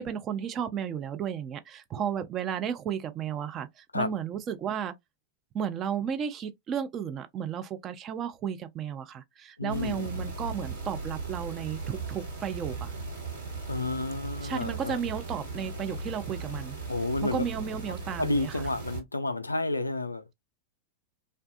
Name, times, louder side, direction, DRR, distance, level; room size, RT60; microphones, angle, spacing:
voice 1, 0.0-4.9 5.5-12.9 14.4-16.8 17.2-18.7, right 8 dB, 30° right, 0.4 m, -33 dB
voice 2, 9.6-10.1 13.7-15.0 16.9-17.5 18.2-20.3, left 2 dB, 80° left, 0.3 m, -30 dB
sound 1, 9.7-19.0, right 3 dB, 80° right, 1.3 m, -38 dB
2.6 x 2.2 x 2.4 m
figure-of-eight pair, 90°, 0 cm